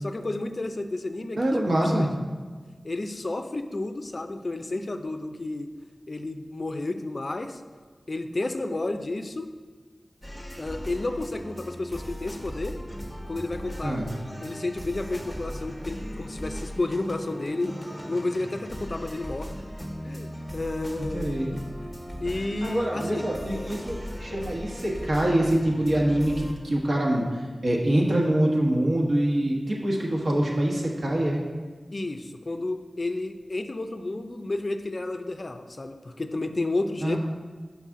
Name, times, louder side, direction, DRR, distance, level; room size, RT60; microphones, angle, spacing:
voice 1, 0.0-1.4 1.7-2.1 2.8-5.7 6.1-7.6 8.1-9.5 10.6-12.8 13.3-14.0 14.4-17.8 18.1-19.5 20.0-21.3 22.2-23.3 31.9-37.2, left 2 dB, 50° left, 7 dB, 0.4 m, -31 dB
voice 2, 1.4-2.1 13.8-14.1 21.0-21.5 22.6-31.4 37.0-37.2, right 1 dB, 70° right, -2 dB, 1.2 m, -25 dB
sound 1, 10.2-26.5, equal, ahead, 0.8 m, -38 dB
5.8 x 5.6 x 3.6 m, 1.4 s
wide cardioid pair, 70°, 0 cm